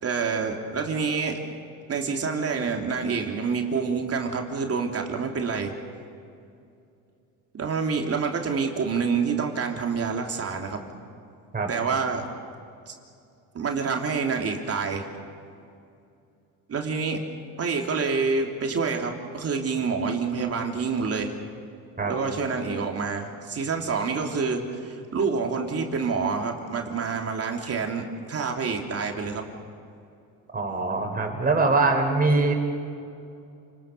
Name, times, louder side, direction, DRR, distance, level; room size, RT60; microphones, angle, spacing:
voice 1, 0.0-1.4 1.9-5.7 7.5-10.8 11.7-12.2 12.9-13.0 13.5-15.0 16.7-17.2 17.6-21.3 22.0-29.4, right 5 dB, 40° right, 2 dB, 3.3 m, -27 dB
voice 2, 11.5-11.9 22.0-22.3 30.5-32.5, right 3 dB, 25° right, 2 dB, 4.9 m, -23 dB
29.5 x 20.5 x 6.9 m, 2.5 s
cardioid pair, 100°, 35 cm